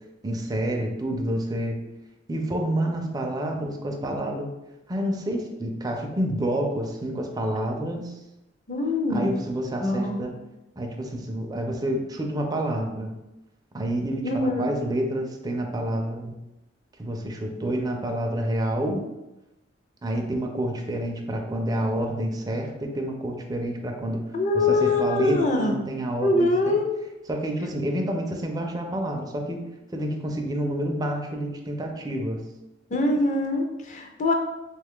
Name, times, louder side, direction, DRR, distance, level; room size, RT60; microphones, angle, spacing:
voice 1, 0.2-1.8 2.3-4.5 4.9-8.2 9.1-10.3 10.8-13.1 13.7-16.4 17.0-19.0 20.0-24.2 24.5-26.8 27.3-32.4, right 1 dB, 20° right, 2 dB, 0.4 m, -28 dB
voice 2, 8.7-9.3 9.8-10.2 14.2-14.7 24.3-25.7 26.2-26.9 32.9-34.3, left 2 dB, 40° left, 2 dB, 0.5 m, -23 dB
3.1 x 2.3 x 3.6 m, 0.96 s
head